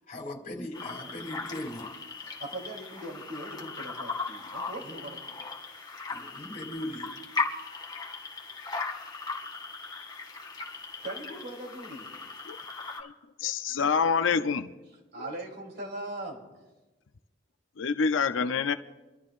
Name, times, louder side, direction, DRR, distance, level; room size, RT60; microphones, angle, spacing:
voice 1, 0.0-1.9 4.8-5.0 6.1-7.1, left 1 dB, 45° left, 1 dB, 3.0 m, -39 dB
sound 1, 0.7-13.0, left 4 dB, 20° left, 2.1 m, -38 dB
voice 2, 2.2-5.5 10.7-12.2 15.1-16.6, right 1 dB, 60° right, 0 dB, 3.1 m, -40 dB
voice 3, 13.4-14.7 15.2-15.3 17.8-18.7, left 5 dB, 75° left, 9 dB, 0.5 m, -26 dB
26.0 x 13.5 x 2.5 m, 1.1 s
head